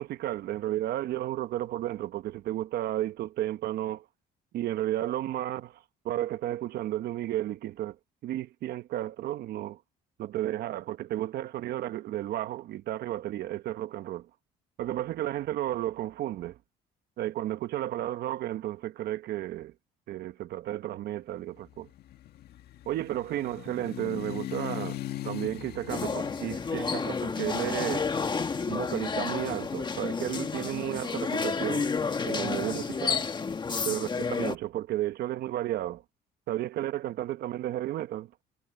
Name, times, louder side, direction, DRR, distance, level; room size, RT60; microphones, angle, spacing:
voice 1, 0.0-4.0 4.5-8.0 8.2-9.8 10.2-14.3 14.8-16.6 17.2-19.7 20.1-21.9 22.9-28.1 28.7-31.9 32.2-33.2 33.8-36.0 36.5-38.3, right 13 dB, 70° right, 1.1 m, -33 dB
sound 1, 21.6-29.6, left 13 dB, 70° left, 1.9 m, -41 dB
sound 2, 25.9-34.5, left 5 dB, 25° left, 1.5 m, -31 dB
cardioid pair, 110°, 17 cm